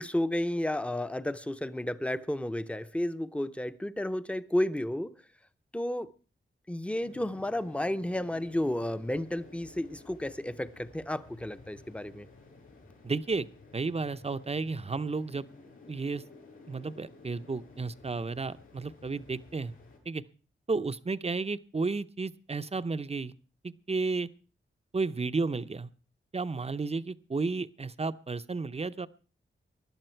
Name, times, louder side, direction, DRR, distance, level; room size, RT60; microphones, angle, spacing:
voice 1, 0.0-5.1 5.7-6.1 6.7-12.3, left 1 dB, 5° left, 0.7 m, -32 dB
sound 1, 7.0-20.0, left 3 dB, 85° left, 6.8 m, -54 dB
voice 2, 13.0-13.5 13.7-15.5 15.9-16.2 16.7-19.7 20.1-20.2 20.7-23.3 23.6-24.3 24.9-25.9 26.3-29.1, right 4 dB, 30° right, 0.7 m, -32 dB
20.0 x 11.5 x 4.5 m
wide cardioid pair, 90°, 21 cm